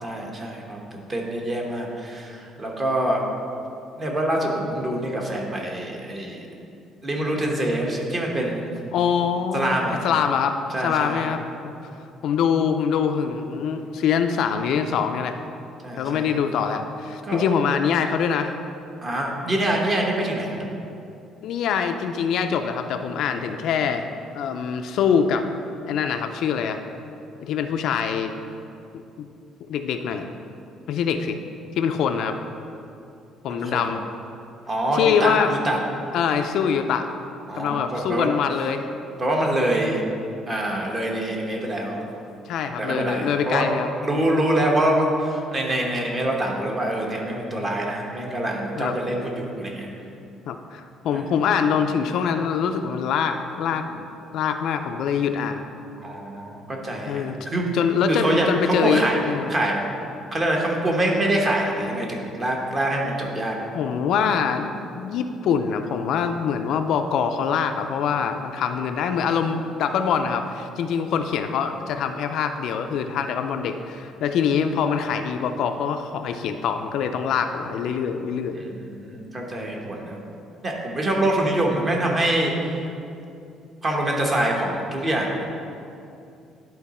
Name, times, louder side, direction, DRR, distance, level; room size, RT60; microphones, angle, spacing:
voice 1, 0.0-3.2 4.0-6.5 7.0-8.7 9.5-10.0 10.7-11.2 15.8-16.4 17.3-17.5 19.0-20.6 33.5-33.9 34.7-35.8 37.5-38.3 39.2-40.0 40.5-42.0 42.8-49.9 51.1-51.2 56.0-57.7 58.1-60.0 60.3-63.5 78.5-80.2 80.6-82.8 83.8-85.4, right 1 dB, 25° right, 0 dB, 1.1 m, -25 dB
voice 2, 8.9-11.4 12.2-15.4 16.0-18.6 21.4-24.1 24.3-25.5 25.9-26.8 27.4-28.3 29.7-30.2 30.9-31.4 31.8-32.3 33.4-34.0 34.9-35.5 36.1-37.1 37.5-38.9 42.5-44.2 48.8-49.0 50.5-54.1 54.3-55.6 57.1-57.4 57.7-59.5 63.7-78.6, left 7 dB, 65° left, 6 dB, 0.4 m, -24 dB
11.0 x 3.9 x 4.2 m, 2.6 s
cardioid pair, 145°, 0 cm